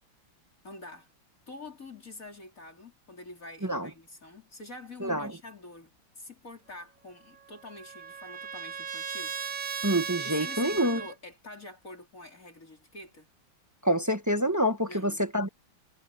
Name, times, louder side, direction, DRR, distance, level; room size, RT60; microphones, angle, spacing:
voice 1, 0.6-1.1 1.5-9.4 10.2-13.3 14.9-15.3, left 2 dB, 40° left, 4.3 m, -46 dB
Trumpet, 7.3-11.1, right 7 dB, 45° right, 1.5 m, -37 dB
voice 2, 9.8-11.0 13.8-15.5, equal, 15° right, 0.8 m, -27 dB
omnidirectional pair, 2.3 m